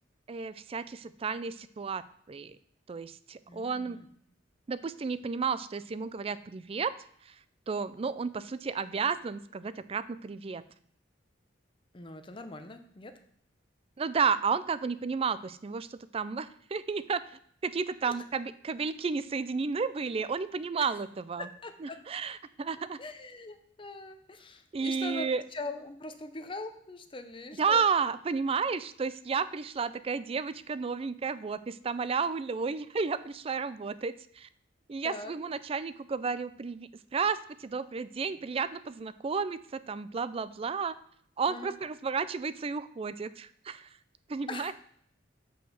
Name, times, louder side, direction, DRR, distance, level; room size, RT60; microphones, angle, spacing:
voice 1, 0.3-2.6 2.9-4.0 4.7-6.9 7.3-7.4 7.7-10.6 14.0-17.2 17.6-21.5 21.8-23.0 24.7-25.4 27.6-34.5 34.9-41.0 41.4-43.9 44.3-44.7, right 5 dB, 30° right, 15 dB, 0.4 m, -32 dB
voice 2, 3.5-4.1 11.9-13.1 18.0-18.1 20.8-20.9 21.6-22.0 23.0-25.3 25.5-27.8 35.0-35.3 41.5-41.7 44.5-44.7, left 2 dB, 25° left, 7 dB, 0.8 m, -41 dB
6.5 x 5.5 x 6.3 m, 0.63 s
head